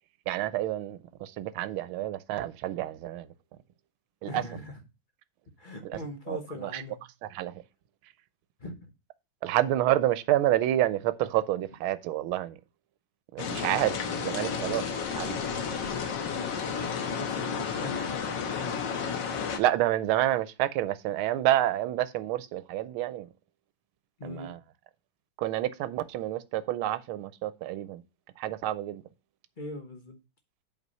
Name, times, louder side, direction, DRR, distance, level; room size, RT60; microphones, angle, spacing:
voice 1, 0.3-3.3 4.2-4.4 5.8-6.0 6.3-6.8 7.3-7.6 9.4-12.6 13.3-14.8 15.2-15.4 19.6-23.3 24.2-24.6 25.4-28.0 28.4-29.0, right 14 dB, 85° right, 1.5 m, -28 dB
voice 2, 4.3-4.8 5.6-7.1 8.6-8.9 16.6-18.7 24.2-24.6 29.6-30.2, left 1 dB, 30° left, 1.1 m, -41 dB
sound 1, 13.4-19.6, left 6 dB, 65° left, 1.7 m, -32 dB
8.2 x 4.7 x 5.4 m
omnidirectional pair, 2.2 m